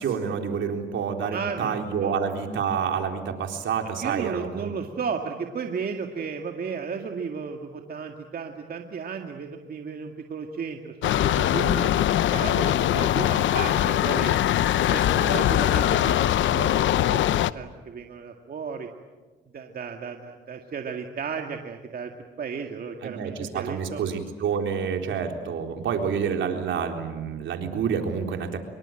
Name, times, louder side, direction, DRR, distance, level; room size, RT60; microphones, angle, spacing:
voice 1, 0.0-4.7 23.0-28.6, right 6 dB, 70° right, 4 dB, 3.9 m, -28 dB
voice 2, 1.3-2.2 4.0-11.9 12.3-14.3 14.8-18.9 19.5-22.1 22.4-24.0, right 6 dB, 50° right, 3 dB, 2.1 m, -34 dB
sound 1, 11.0-17.5, left 12 dB, 70° left, 0.8 m, -22 dB
25.0 x 23.0 x 9.0 m, 1.3 s
cardioid pair, 90°, 20 cm